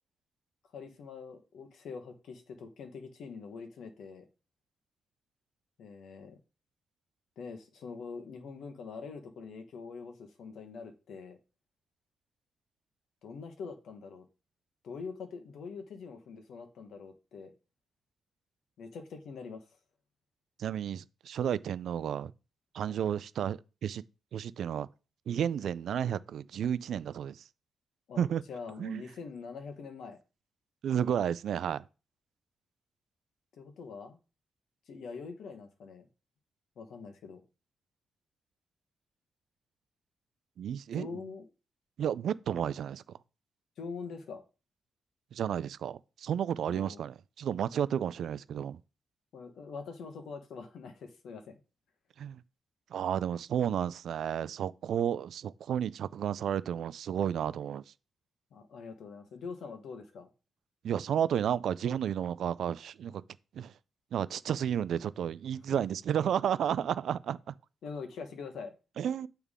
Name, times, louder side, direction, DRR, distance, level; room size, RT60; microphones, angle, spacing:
voice 1, 0.7-4.3 5.8-6.4 7.4-11.4 13.2-14.3 14.8-17.5 18.8-19.6 22.9-23.1 28.1-30.2 33.5-34.2 34.9-36.1 36.8-37.4 40.9-41.5 43.8-44.4 46.6-47.0 49.3-51.6 58.5-60.3 65.7-65.8 67.8-68.7, left 5 dB, 75° left, 1.1 m, -44 dB
voice 2, 20.6-22.3 22.7-24.0 24.3-24.9 25.3-27.4 28.2-28.4 28.8-29.0 30.8-31.8 40.6-41.2 42.0-43.0 45.3-48.8 52.2-52.4 52.9-57.8 60.8-63.2 63.5-63.7 64.1-67.5 69.0-69.3, right 9 dB, 70° right, 0.3 m, -32 dB
8.1 x 3.4 x 3.7 m
wide cardioid pair, 150°, 0 cm